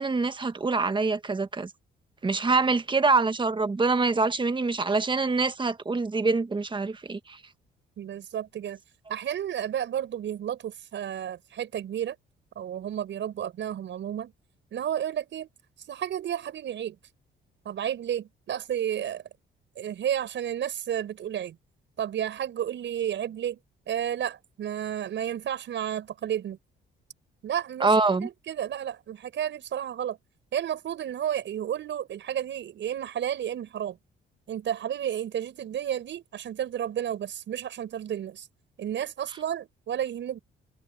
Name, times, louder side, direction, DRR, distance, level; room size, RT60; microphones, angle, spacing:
voice 1, 0.0-1.7 2.2-7.4 27.8-28.3, right 3 dB, 25° right, 1.4 m, -25 dB
voice 2, 8.0-8.8 9.1-12.2 12.6-14.3 14.7-15.5 15.9-17.0 17.7-19.2 19.8-21.6 22.0-23.6 23.9-26.6 27.4-30.2 30.5-34.0 34.5-38.5 38.8-40.4, right 10 dB, 70° right, 7.3 m, -32 dB
cardioid pair, 90°, 20 cm